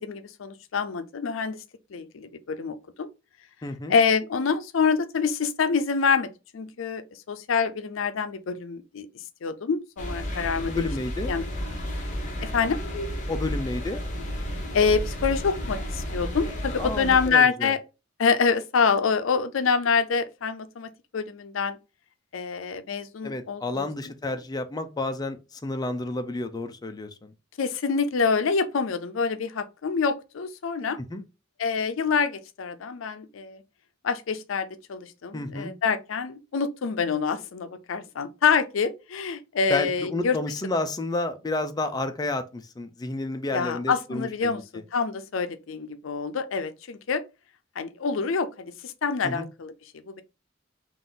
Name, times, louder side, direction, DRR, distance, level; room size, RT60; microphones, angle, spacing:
voice 1, 0.0-1.6 1.9-3.1 3.9-9.1 9.4-10.9 11.3-11.4 12.4-12.8 14.7-17.8 18.2-21.8 22.3-23.9 27.6-31.0 31.6-33.6 34.0-40.4 43.5-47.2 47.8-49.7 50.1-50.2, left 5 dB, 80° left, 0.5 m, -26 dB
voice 2, 3.6-4.0 10.7-11.3 13.3-14.0 16.8-17.7 23.2-27.3 31.1-31.2 35.3-35.7 39.7-44.8 49.2-49.5, left 2 dB, 20° left, 0.4 m, -31 dB
sound 1, 10.0-17.3, equal, 40° left, 1.0 m, -32 dB
3.7 x 2.5 x 3.8 m
head